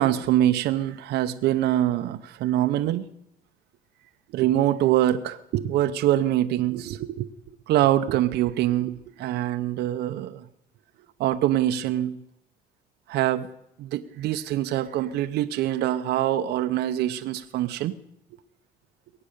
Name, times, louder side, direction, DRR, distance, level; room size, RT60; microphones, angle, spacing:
voice 1, 0.0-3.0 4.3-7.3 7.7-10.4 11.2-12.2 13.1-13.5 13.8-17.9, right 13 dB, 80° right, 9 dB, 0.8 m, -24 dB
22.0 x 8.9 x 6.7 m, 0.78 s
cardioid pair, 110°, 17 cm